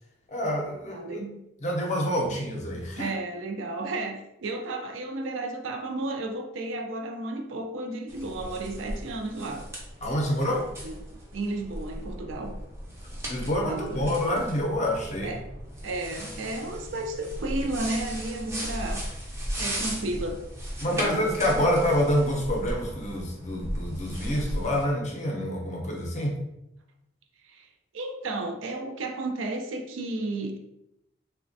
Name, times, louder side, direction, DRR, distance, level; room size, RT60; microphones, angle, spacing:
voice 1, 0.3-1.2 1.6-3.1 10.0-10.7 13.2-15.4 20.8-26.4, equal, 35° left, -1 dB, 0.5 m, -27 dB
voice 2, 0.9-1.4 2.3-2.5 2.9-9.7 10.8-11.0 11.3-12.6 13.6-14.1 15.2-15.4 15.8-19.1 19.6-20.4 20.9-21.3 21.6-21.7 27.4-27.7 27.9-30.6, right 2 dB, 85° right, 4 dB, 0.4 m, -33 dB
sound 1, 8.1-24.9, equal, 15° right, 0.4 m, -36 dB
3.2 x 2.1 x 2.6 m, 0.84 s
head